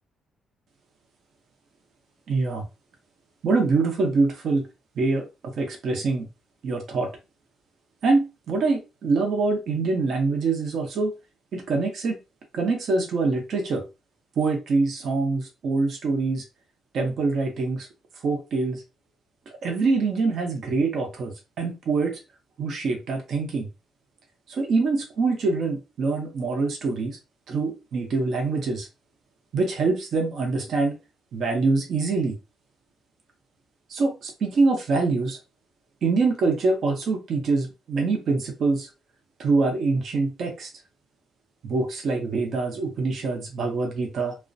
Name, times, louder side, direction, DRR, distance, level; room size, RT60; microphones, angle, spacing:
voice 1, 2.3-2.6 3.4-4.7 5.0-6.3 6.6-7.1 8.0-11.1 11.5-12.2 12.5-13.9 14.4-16.4 16.9-17.9 18.2-18.8 19.6-22.2 22.6-23.7 24.5-27.2 27.5-28.9 29.5-31.0 31.3-32.4 33.9-35.4 36.0-38.9 39.4-40.7 41.6-44.4, right 3 dB, 60° right, 3 dB, 0.7 m, -24 dB
2.3 x 2.1 x 2.5 m, 0.26 s
cardioid pair, 90°, 0 cm